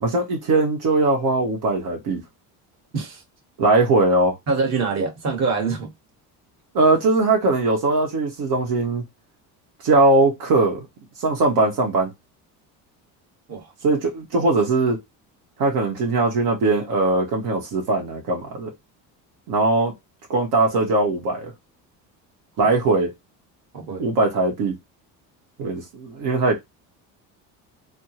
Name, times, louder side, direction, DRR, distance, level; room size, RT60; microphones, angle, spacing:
voice 1, 0.0-2.2 3.6-4.4 6.7-9.0 9.8-10.8 11.2-12.1 13.8-15.0 15.6-18.7 19.5-19.9 20.3-21.5 22.6-23.1 24.0-24.7 25.6-26.6, right 2 dB, 75° right, 1.0 m, -20 dB
voice 2, 4.5-5.9 13.5-13.7 23.7-24.1, right 4 dB, 45° right, 1.4 m, -25 dB
3.4 x 2.0 x 2.8 m
cardioid pair, 120°, 38 cm